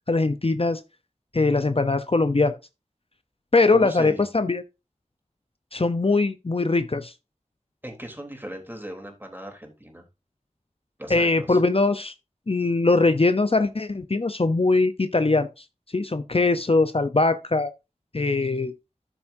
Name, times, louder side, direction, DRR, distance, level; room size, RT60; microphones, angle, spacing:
voice 1, 0.1-0.8 1.3-2.6 3.5-4.6 5.7-7.1 11.1-12.1 12.5-15.6 15.9-17.7 18.1-18.7, left 3 dB, 45° left, 0.7 m, -21 dB
voice 2, 3.7-4.2 7.8-10.0 11.0-11.6, right 1 dB, 15° right, 3.4 m, -37 dB
12.5 x 7.1 x 2.7 m
wide cardioid pair, 40°, 13 cm